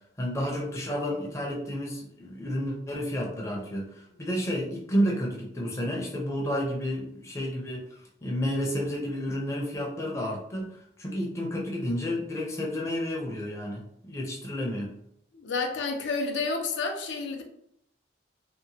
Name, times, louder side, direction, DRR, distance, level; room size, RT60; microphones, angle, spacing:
voice 1, 0.2-7.8 8.2-14.9, equal, 15° left, -3 dB, 0.5 m, -31 dB
voice 2, 15.3-17.4, left 4 dB, 85° left, 3 dB, 0.5 m, -30 dB
2.8 x 2.1 x 2.7 m, 0.72 s
head